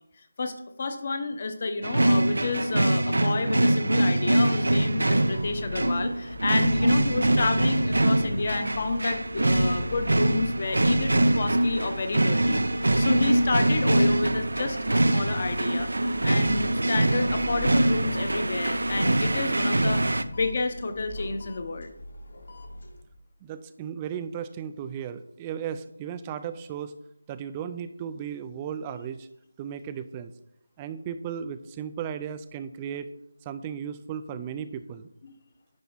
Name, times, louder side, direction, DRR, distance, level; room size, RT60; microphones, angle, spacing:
voice 1, 0.4-15.9 16.2-20.0 20.3-21.9 35.2-35.3, left 3 dB, 35° left, 8 dB, 0.8 m, -30 dB
sound 1, 1.8-20.2, right 1 dB, 80° right, 0.6 m, -24 dB
sound 2, 4.6-23.0, left 1 dB, 55° left, 1.4 m, -41 dB
voice 2, 23.4-26.9 27.3-29.3 29.6-30.3 30.8-33.1 33.5-35.1, right 8 dB, 15° right, 12 dB, 0.3 m, -35 dB
9.9 x 4.1 x 5.7 m, 0.80 s
figure-of-eight pair, 170°, 0 cm